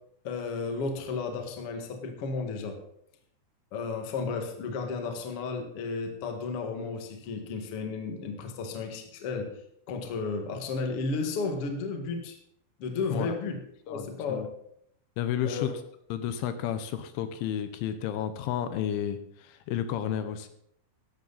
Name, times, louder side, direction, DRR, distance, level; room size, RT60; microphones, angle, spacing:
voice 1, 0.2-2.8 3.7-9.5 9.9-12.4 12.8-13.6 13.9-14.4 15.4-15.7, left 4 dB, 60° left, 4 dB, 1.5 m, -33 dB
voice 2, 13.9-14.5 15.2-15.7 16.1-20.5, left 10 dB, 80° left, 10 dB, 3.2 m, -32 dB
15.5 x 12.0 x 4.1 m, 0.71 s
omnidirectional pair, 5.7 m